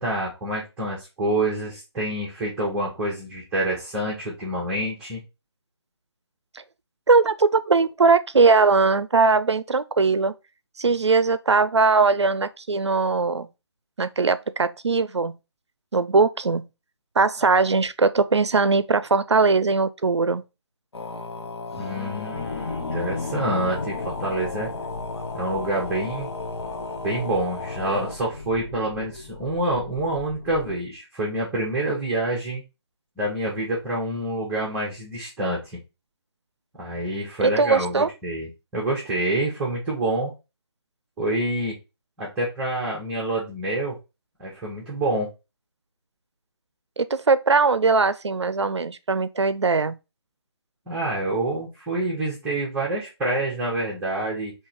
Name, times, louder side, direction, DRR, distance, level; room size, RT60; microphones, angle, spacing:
voice 1, 0.0-5.2 21.8-24.7 25.3-26.3 27.0-32.6 33.2-35.8 36.8-40.3 41.2-41.7 42.2-44.0 44.4-45.3 50.9-54.5, right 1 dB, 5° right, 0.8 m, -27 dB
voice 2, 7.1-10.3 10.8-13.5 14.0-15.4 15.9-16.7 17.2-20.4 37.4-38.1 47.0-50.0, right 4 dB, 85° right, 0.5 m, -20 dB
sound 1, 20.9-28.2, left 3 dB, 70° left, 0.7 m, -34 dB
sound 2, 22.3-30.8, left 4 dB, 35° left, 0.4 m, -37 dB
3.8 x 2.9 x 4.3 m
figure-of-eight pair, 155°, 14 cm